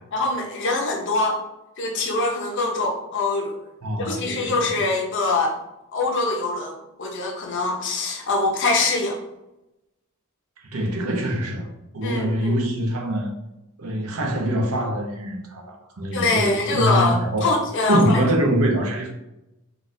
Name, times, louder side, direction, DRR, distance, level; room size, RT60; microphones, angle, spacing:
voice 1, 0.1-1.4 1.8-3.6 3.9-5.6 5.9-9.2 12.0-12.6 16.1-18.3, left 3 dB, 60° left, 0.7 m, -24 dB
voice 2, 3.8-4.8 10.6-11.7 11.9-13.3 13.8-17.5 17.9-19.1, right 1 dB, 80° right, 0.7 m, -24 dB
4.0 x 2.4 x 2.6 m
head